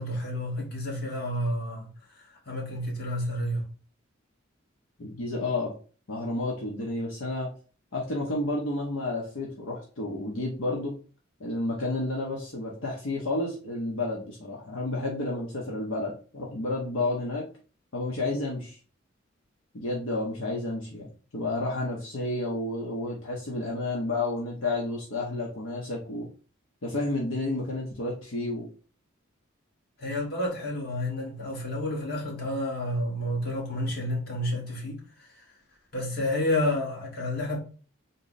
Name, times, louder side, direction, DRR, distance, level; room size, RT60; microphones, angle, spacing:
voice 1, 0.0-3.7 30.0-35.5 35.9-37.6, left 1 dB, 50° left, 1.3 m, -30 dB
voice 2, 5.0-5.7 6.1-7.5 7.9-11.0 11.4-17.4 17.9-18.8 19.7-26.3 26.8-28.7, left 2 dB, 70° left, 0.7 m, -31 dB
3.8 x 2.0 x 3.8 m
head